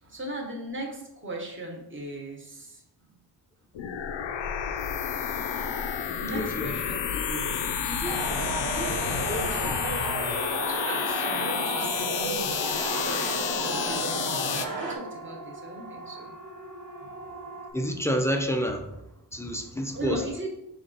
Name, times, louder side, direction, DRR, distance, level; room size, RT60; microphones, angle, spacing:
voice 1, 0.0-2.8 6.1-8.3 8.6-9.8 10.7-12.6 12.9-16.3 17.0-17.1 19.9-20.5, right 1 dB, 25° right, -1 dB, 1.0 m, -38 dB
sound 1, 3.7-14.7, left 7 dB, 75° left, 0.5 m, -30 dB
voice 2, 6.3-6.7 17.7-18.9 19.3-20.2, equal, 5° left, 3 dB, 0.3 m, -28 dB
sound 2, 8.0-15.0, right 2 dB, 85° right, 0.9 m, -32 dB
Siren, 10.1-17.7, right 2 dB, 45° right, 0.8 m, -43 dB
5.3 x 2.4 x 3.8 m, 0.84 s
wide cardioid pair, 130°, 44 cm